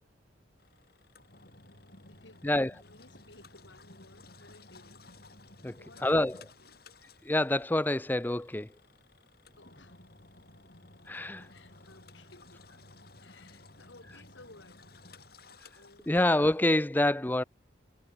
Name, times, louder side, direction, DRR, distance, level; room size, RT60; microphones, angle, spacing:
Engine, 0.6-16.7, left 2 dB, 55° left, 4.6 m, -56 dB
voice 1, 2.1-5.0 5.7-6.8 9.6-10.0 11.5-12.6 13.2-14.9 15.7-16.5, left 2 dB, 90° left, 4.8 m, -57 dB
voice 2, 5.6-6.4 7.2-8.7 11.1-11.5 16.1-17.4, left 1 dB, 10° left, 0.5 m, -27 dB
head